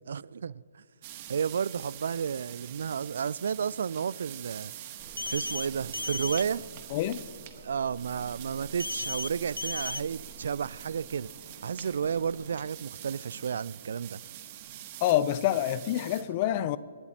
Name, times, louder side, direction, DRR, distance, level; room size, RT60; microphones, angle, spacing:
voice 1, 0.1-0.6 1.3-4.7 5.3-6.6 7.6-11.3 11.6-14.2, right 7 dB, 60° right, 0.3 m, -32 dB
sound 1, 1.0-16.2, right 12 dB, 35° right, 1.3 m, -45 dB
sound 2, 5.0-12.5, right 3 dB, 20° right, 2.5 m, -51 dB
sound 3, 5.2-5.7 5.9-6.4 8.8-9.3 9.6-10.0, left 2 dB, 90° left, 0.4 m, -34 dB
voice 2, 6.9-7.2 15.0-16.8, left 12 dB, 35° left, 0.6 m, -27 dB
29.0 x 12.0 x 2.9 m
figure-of-eight pair, 135°, 0 cm